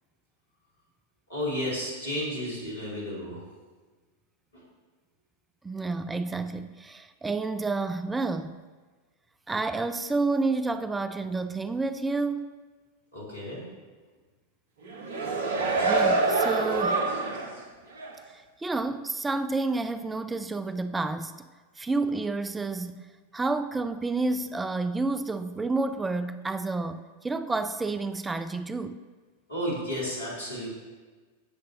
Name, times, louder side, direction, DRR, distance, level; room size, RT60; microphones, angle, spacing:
voice 1, 1.3-3.4 13.1-13.6 15.5-15.9 29.5-30.7, equal, 70° left, 3.1 m, -33 dB
voice 2, 5.6-8.6 9.5-12.5 15.8-17.1 18.3-21.5 21.8-29.0, right 3 dB, 10° right, 0.3 m, -30 dB
sound 1, 14.8-17.6 18.0-18.1, right 3 dB, 55° right, 1.1 m, -26 dB
15.5 x 6.7 x 2.8 m
figure-of-eight pair, 90°, 0 cm